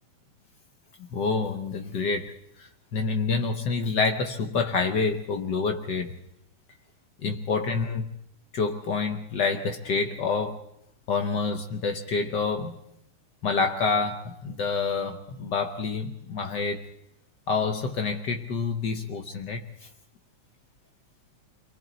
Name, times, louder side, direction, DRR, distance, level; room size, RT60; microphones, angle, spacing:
voice 1, 1.1-6.1 7.2-8.1 8.5-10.6 11.1-12.7 13.4-16.8 17.5-19.9, left 4 dB, 80° left, 0.9 m, -28 dB
28.5 x 24.0 x 4.0 m
omnidirectional pair, 3.4 m